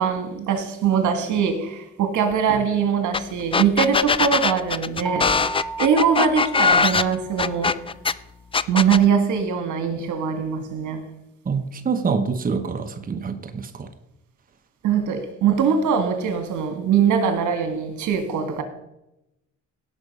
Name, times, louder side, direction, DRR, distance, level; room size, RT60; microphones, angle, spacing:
voice 1, 0.0-5.4 5.8-7.8 8.7-11.0 14.8-18.6, right 7 dB, 75° right, 7 dB, 1.8 m, -22 dB
sound 1, 3.1-3.2 3.5-8.1 8.5-9.0, left 5 dB, 20° left, 0.4 m, -20 dB
sound 2, 5.0-7.8, right 4 dB, ahead, 2.0 m, -34 dB
voice 2, 11.4-13.9, right 5 dB, 30° right, 8 dB, 1.0 m, -26 dB
17.5 x 6.0 x 5.4 m, 0.90 s
cardioid pair, 90°, 30 cm